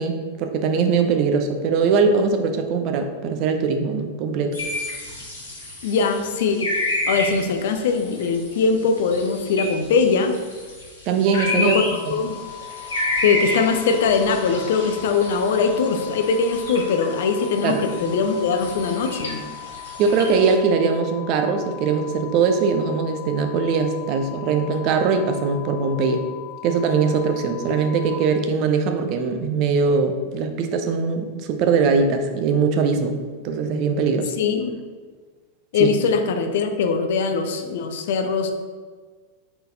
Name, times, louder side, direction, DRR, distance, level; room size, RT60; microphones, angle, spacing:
voice 1, 0.0-4.6 11.1-11.7 12.1-12.2 17.6-17.8 20.0-26.2 26.6-33.2 33.4-34.3 35.8-35.9, right 5 dB, 40° right, 6 dB, 0.4 m, -21 dB
sound 1, 4.5-20.5, left 1 dB, 70° left, 1.4 m, -31 dB
voice 2, 5.8-6.7 7.1-10.3 11.5-11.9 12.1-12.4 13.2-19.4 34.4-34.8 35.7-38.5, left 5 dB, 55° left, 6 dB, 0.4 m, -21 dB
sound 2, 11.2-28.1, left 16 dB, 65° right, 0.8 m, -39 dB
3.9 x 3.9 x 2.6 m, 1.5 s
figure-of-eight pair, 90°, 0 cm